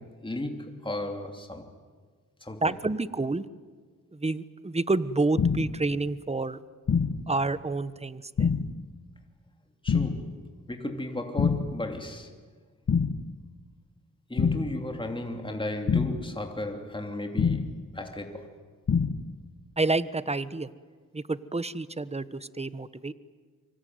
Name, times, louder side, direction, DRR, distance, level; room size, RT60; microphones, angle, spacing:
voice 1, 0.0-1.7 2.4-2.7 9.8-12.3 14.3-18.6, left 1 dB, 15° left, 3.1 m, -35 dB
voice 2, 2.6-3.4 4.1-6.6 7.3-8.5 19.8-20.7 21.1-23.1, right 3 dB, 20° right, 1.1 m, -29 dB
sound 1, 5.4-5.8 6.9-7.3 8.4-8.8 9.9-10.3 11.4-11.8 12.9-13.3 14.4-14.8 15.9-16.3 17.4-17.8 18.9-19.3, left 5 dB, 55° left, 1.4 m, -26 dB
25.0 x 24.5 x 9.5 m
cardioid pair, 60°, 34 cm